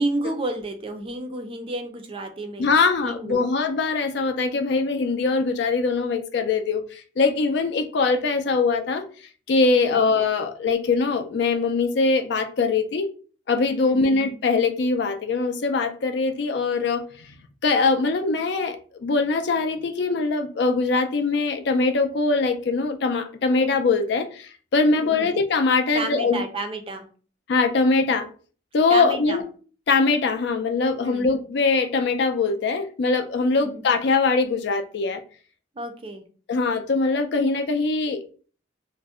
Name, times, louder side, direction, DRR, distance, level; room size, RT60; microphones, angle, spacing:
voice 1, 0.0-2.6 3.0-3.5 9.7-10.1 13.8-14.2 25.0-25.4 25.9-27.1 28.9-29.4 31.0-31.3 33.6-33.8 35.8-36.3, right 2 dB, 30° right, 0.4 m, -31 dB
voice 2, 2.6-9.0 9.5-13.1 13.5-17.3 17.6-26.4 27.5-28.3 28.7-29.4 29.9-35.2 36.5-38.2, left 4 dB, 60° left, 0.4 m, -22 dB
2.5 x 2.1 x 3.5 m
head